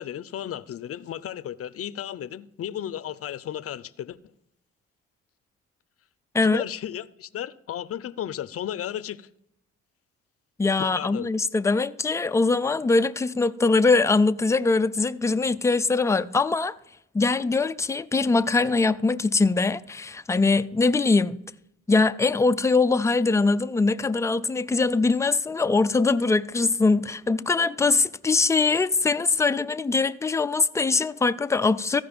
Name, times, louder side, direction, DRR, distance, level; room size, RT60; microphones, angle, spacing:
voice 1, 0.0-4.2 6.4-9.3 10.8-11.3, left 10 dB, 50° left, 0.6 m, -34 dB
voice 2, 10.6-16.7 17.1-21.4 21.9-32.0, left 3 dB, 10° left, 0.4 m, -22 dB
14.5 x 5.2 x 5.2 m
cardioid pair, 90°, 30 cm